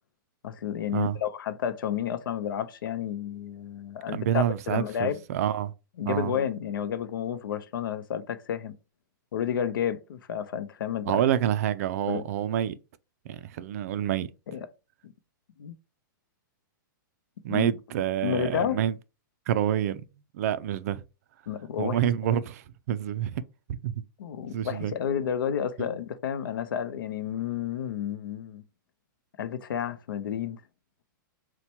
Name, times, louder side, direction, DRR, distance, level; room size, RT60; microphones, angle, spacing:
voice 1, 0.4-5.2 6.0-8.8 9.3-11.2 12.1-12.2 14.5-14.7 15.0-15.1 15.6-15.8 17.5-17.7 18.2-18.8 21.5-22.0 22.3-22.4 24.2-28.6 29.4-30.6, left 9 dB, 85° left, 0.6 m, -31 dB
voice 2, 4.1-5.7 6.1-6.3 11.1-12.7 13.3-14.3 17.4-19.0 19.5-20.0 20.3-21.0 21.8-23.4 23.8-24.0 24.5-24.9 25.8-25.9, right 10 dB, 45° right, 0.4 m, -27 dB
4.2 x 2.2 x 4.3 m
hypercardioid pair, 160°, 11 cm